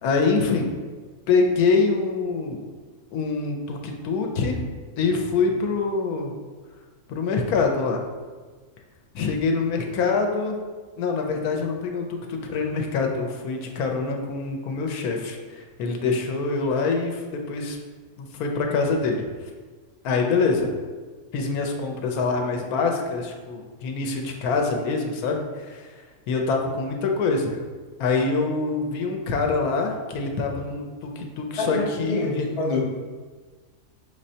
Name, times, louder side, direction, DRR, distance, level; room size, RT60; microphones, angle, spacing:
voice 1, 0.0-0.7 1.3-2.6 3.1-4.6 5.0-6.3 7.1-8.0 9.1-10.6 11.0-17.8 18.2-19.3 20.0-20.7 21.3-25.9 26.3-27.6 28.0-32.5, left 4 dB, 80° left, 2 dB, 1.1 m, -25 dB
voice 2, 31.6-32.8, left 2 dB, 40° left, -3 dB, 0.5 m, -27 dB
5.5 x 3.2 x 2.7 m, 1.4 s
omnidirectional pair, 1.6 m